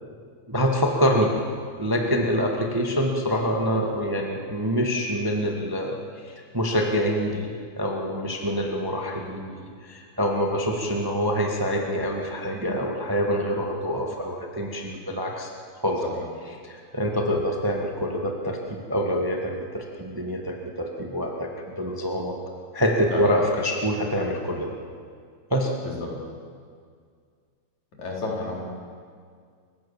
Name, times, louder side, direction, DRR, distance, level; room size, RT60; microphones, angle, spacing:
voice 1, 0.5-1.4 1.8-6.0 6.2-15.5 15.8-16.0 16.6-21.5 21.8-22.3 22.7-24.7 25.5-25.7, equal, 10° right, 1 dB, 1.6 m, -26 dB
voice 2, 28.0-28.6, left 3 dB, 70° left, -2 dB, 5.6 m, -31 dB
29.5 x 16.5 x 7.4 m, 2.1 s
omnidirectional pair, 3.4 m